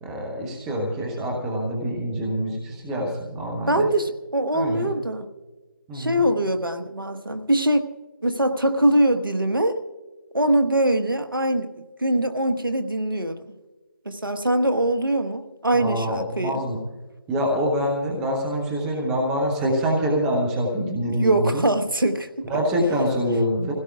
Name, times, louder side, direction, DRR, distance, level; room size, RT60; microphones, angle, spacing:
voice 1, 0.0-3.9 4.5-4.9 5.9-6.2 15.7-16.8 17.3-21.6 22.4-23.7, equal, 5° right, -1 dB, 0.6 m, -25 dB
voice 2, 3.7-5.3 5.9-7.9 8.2-9.8 10.3-13.4 14.0-16.6 21.1-22.5, right 1 dB, 80° right, 7 dB, 1.2 m, -22 dB
26.0 x 16.5 x 2.4 m, 1.3 s
figure-of-eight pair, 160°, 11 cm